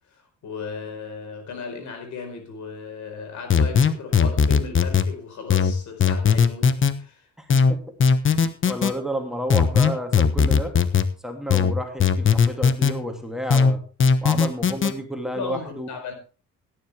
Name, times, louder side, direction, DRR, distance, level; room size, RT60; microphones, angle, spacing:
voice 1, 0.1-7.3 15.3-16.1, left 5 dB, 70° left, 5 dB, 4.6 m, -36 dB
sound 1, 3.5-5.1 5.5-6.9 7.5-8.9 9.5-11.1 11.5-12.9 13.5-14.9, left 6 dB, 40° left, 1.2 m, -18 dB
voice 2, 7.4-7.8 8.4-10.7 11.2-13.8 14.2-15.9, equal, ahead, 3 dB, 2.8 m, -31 dB
17.0 x 10.5 x 3.5 m, 0.35 s
cardioid pair, 90°, 30 cm